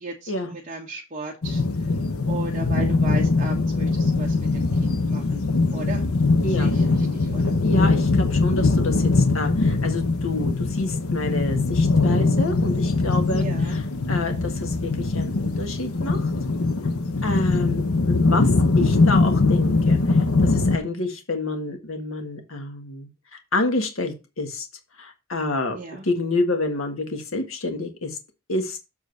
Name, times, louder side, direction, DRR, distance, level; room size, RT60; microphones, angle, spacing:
voice 1, 0.0-1.6 2.3-5.4 5.7-6.1 6.6-6.8 7.1-7.6 8.6-8.7 13.3-13.8 25.7-26.0, right 2 dB, 35° right, -3 dB, 1.3 m, -35 dB
sound 1, 1.4-20.8, left 3 dB, 90° left, 0.9 m, -21 dB
voice 2, 7.6-13.8 14.1-16.3 17.2-23.1 23.5-24.7 25.0-25.8 26.0-28.2 28.5-28.8, left 2 dB, 70° left, 5 dB, 1.6 m, -28 dB
7.4 x 3.9 x 6.4 m, 0.28 s
head